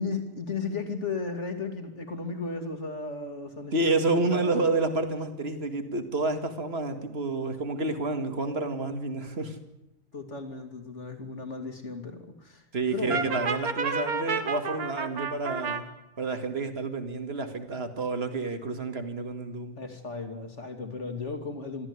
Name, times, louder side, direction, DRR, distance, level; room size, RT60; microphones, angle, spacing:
voice 1, 0.0-4.9 10.1-12.7 12.9-13.4 19.8-21.9, left 4 dB, 30° left, 7 dB, 2.7 m, -35 dB
voice 2, 3.7-9.6 12.7-15.9 16.2-19.8, right 3 dB, 30° right, 8 dB, 2.1 m, -29 dB
Brass instrument, 13.1-15.8, right 5 dB, 45° right, 1.9 m, -30 dB
24.0 x 14.0 x 9.7 m, 0.87 s
omnidirectional pair, 2.3 m